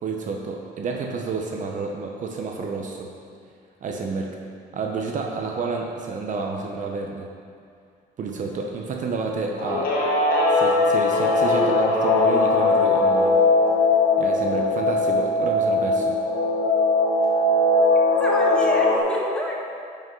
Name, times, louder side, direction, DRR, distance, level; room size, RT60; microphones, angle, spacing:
voice 1, 0.0-3.1 3.8-4.4 4.7-7.3 8.2-9.9 10.5-13.3 14.2-16.2, right 4 dB, 50° right, 1 dB, 0.8 m, -30 dB
Guitar, 9.6-19.0, left 2 dB, 60° left, 2.0 m, -20 dB
voice 2, 18.2-19.6, left 1 dB, 5° left, -3 dB, 1.5 m, -28 dB
10.5 x 5.3 x 3.9 m, 2.3 s
cardioid pair, 110°, 17 cm